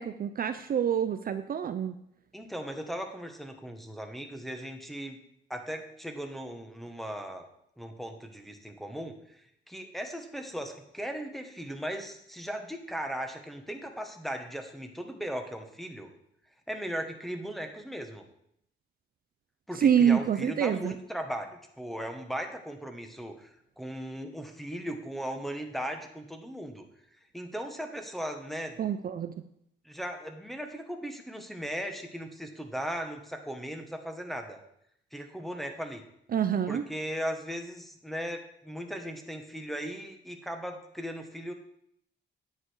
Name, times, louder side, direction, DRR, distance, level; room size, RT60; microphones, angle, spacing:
voice 1, 0.0-2.0 19.8-20.9 28.8-29.3 36.3-36.8, right 8 dB, 45° right, 10 dB, 0.6 m, -26 dB
voice 2, 2.3-5.2 5.5-7.5 7.8-16.1 16.7-18.2 19.7-26.8 27.3-28.8 29.9-34.6 35.1-36.0 36.7-41.5, equal, ahead, 5 dB, 1.6 m, -37 dB
9.9 x 7.7 x 4.9 m, 0.73 s
cardioid pair, 90°, 20 cm